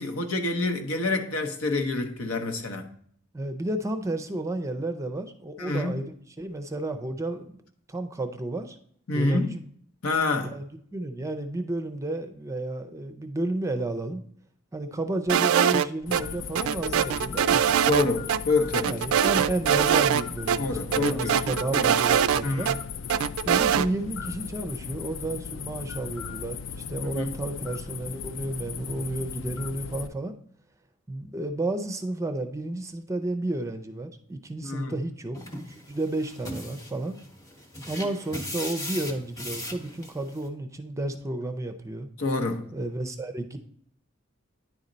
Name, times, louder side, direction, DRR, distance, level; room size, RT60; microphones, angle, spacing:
voice 1, 0.0-2.9 5.6-6.0 9.1-9.5 10.0-10.5 17.3-17.4 17.9-19.0 20.6-21.4 21.7-21.9 22.4-22.8 27.0-27.3 34.6-35.0 42.2-42.6, left 3 dB, 85° left, 0.9 m, -27 dB
voice 2, 3.3-7.6 7.9-8.8 9.1-9.6 10.4-14.2 14.7-17.7 18.8-22.7 23.4-30.3 31.1-35.6 35.9-37.2 37.9-42.1 42.7-43.6, right 2 dB, 15° right, 0.4 m, -32 dB
sound 1, 15.3-16.2 16.6-18.0 18.3-18.4 18.7-20.2 20.5-20.6 20.9-22.8 23.1-23.9, right 9 dB, 85° right, 0.3 m, -22 dB
sound 2, 16.0-30.1, left 6 dB, 60° left, 0.4 m, -37 dB
sound 3, 35.3-40.5, left 1 dB, 15° left, 0.8 m, -38 dB
9.9 x 4.2 x 3.9 m
head